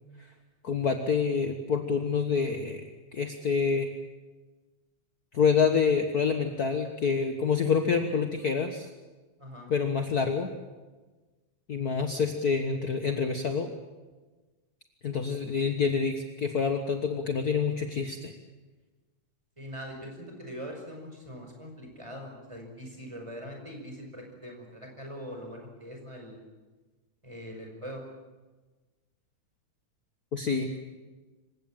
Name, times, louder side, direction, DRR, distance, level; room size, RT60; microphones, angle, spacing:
voice 1, 0.6-2.8 3.1-3.9 5.3-8.9 9.7-10.5 11.7-13.7 15.0-18.3 30.3-30.9, left 5 dB, 50° left, 5 dB, 1.1 m, -27 dB
voice 2, 9.4-9.7 19.6-26.4 27.2-28.0, equal, 10° right, 2 dB, 5.5 m, -42 dB
26.5 x 16.5 x 9.0 m, 1.2 s
omnidirectional pair, 3.7 m